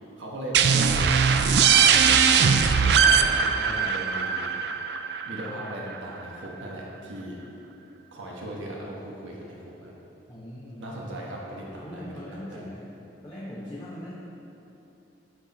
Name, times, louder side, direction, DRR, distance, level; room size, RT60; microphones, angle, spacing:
voice 1, 0.2-2.4 2.7-4.6 5.2-7.4 8.1-9.9 10.8-12.7, right 1 dB, 85° right, -3 dB, 1.2 m, -38 dB
sound 1, 0.5-6.0, right 6 dB, 60° right, 0.4 m, -21 dB
voice 2, 10.3-10.9 11.8-12.8 13.2-14.1, left 1 dB, 20° left, -9 dB, 1.3 m, -40 dB
13.5 x 4.7 x 4.2 m, 2.9 s
head